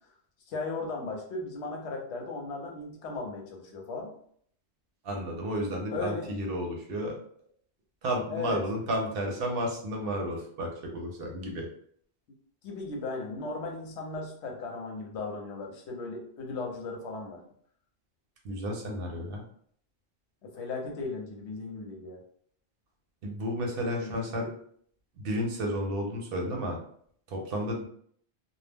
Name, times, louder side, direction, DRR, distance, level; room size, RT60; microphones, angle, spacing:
voice 1, 0.5-4.1 5.9-6.3 8.3-8.6 12.6-17.4 20.4-22.2 24.0-24.6, left 3 dB, 80° left, 1 dB, 0.9 m, -36 dB
voice 2, 5.0-7.2 8.0-11.7 18.4-19.4 23.2-24.5 25.2-26.8 27.3-27.8, equal, 60° right, 0 dB, 0.8 m, -32 dB
2.2 x 2.0 x 3.3 m, 0.62 s
omnidirectional pair, 1.1 m